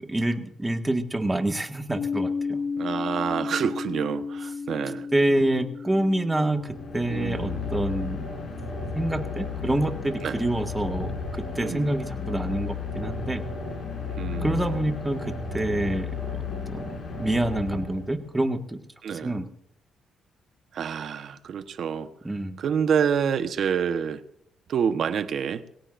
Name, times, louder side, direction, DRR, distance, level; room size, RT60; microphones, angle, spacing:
voice 1, 0.0-2.6 5.1-8.3 9.0-13.4 14.4-18.8 19.1-19.5 22.2-22.6, right 1 dB, 15° right, 6 dB, 1.8 m, -27 dB
sound 1, 1.9-9.8, left 5 dB, 70° left, 3.4 m, -34 dB
voice 2, 2.8-5.1 7.1-7.6 10.2-10.4 11.6-11.9 14.2-14.9 19.0-19.4 20.7-22.1 22.6-24.2 24.7-25.6, right 7 dB, 60° right, 10 dB, 1.2 m, -28 dB
sound 2, 6.5-18.4, left 5 dB, 55° left, 6.7 m, -33 dB
22.0 x 17.5 x 2.6 m, 0.73 s
cardioid pair, 90°, 0 cm